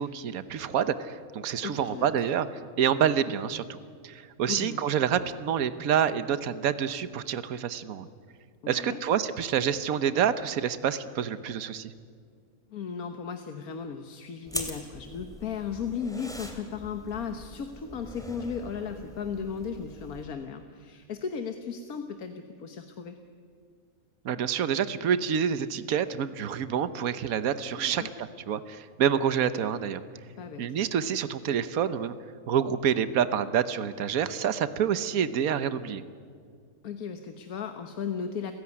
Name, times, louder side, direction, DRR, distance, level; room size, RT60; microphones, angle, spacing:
voice 1, 0.0-2.5 2.8-3.8 4.0-8.1 8.7-11.9 24.2-30.0 30.6-32.2 32.5-36.0, right 8 dB, 80° right, 13 dB, 1.3 m, -27 dB
voice 2, 1.6-2.1 4.5-4.8 8.6-9.0 12.7-23.1 27.7-28.1 30.4-30.8 36.8-38.5, left 6 dB, 90° left, 7 dB, 1.6 m, -36 dB
sound 1, 14.5-20.2, equal, ahead, 2.9 m, -42 dB
30.0 x 16.0 x 9.7 m, 2.1 s
omnidirectional pair, 1.5 m